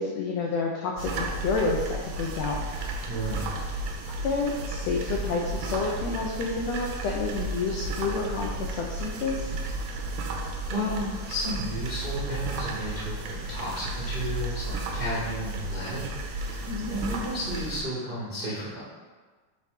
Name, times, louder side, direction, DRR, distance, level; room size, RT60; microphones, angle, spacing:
voice 1, 0.0-2.6 4.1-9.5 16.7-16.9, left 4 dB, 85° left, -1 dB, 1.5 m, -29 dB
sound 1, 1.0-17.8, right 2 dB, 80° right, 2.4 m, -33 dB
voice 2, 3.1-3.4 10.7-18.8, equal, 65° right, -9 dB, 0.5 m, -33 dB
8.0 x 3.3 x 5.0 m, 1.4 s
omnidirectional pair, 3.9 m